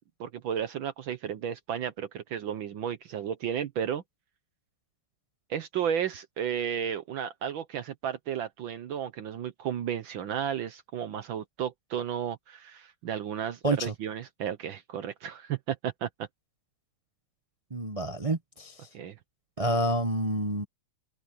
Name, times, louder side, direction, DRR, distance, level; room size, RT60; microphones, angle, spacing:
voice 1, 0.2-4.0 5.5-16.3 18.9-19.2, right 9 dB, 65° right, 1.5 m, -33 dB
voice 2, 13.6-13.9 17.7-18.7 19.6-20.6, right 1 dB, 40° right, 0.4 m, -28 dB
omnidirectional pair, 2.4 m